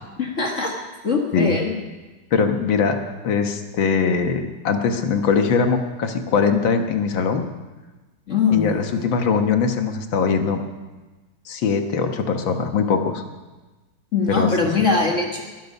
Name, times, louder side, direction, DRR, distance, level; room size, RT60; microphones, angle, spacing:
voice 1, 0.2-0.7 1.0-1.7 8.3-9.0 14.1-15.4, left 4 dB, 40° left, 0 dB, 1.7 m, -22 dB
voice 2, 2.3-3.0 3.2-7.4 8.5-10.6 11.5-13.2 14.3-14.5, left 5 dB, 80° left, 6 dB, 2.1 m, -21 dB
20.5 x 12.5 x 5.4 m, 1.2 s
omnidirectional pair, 2.1 m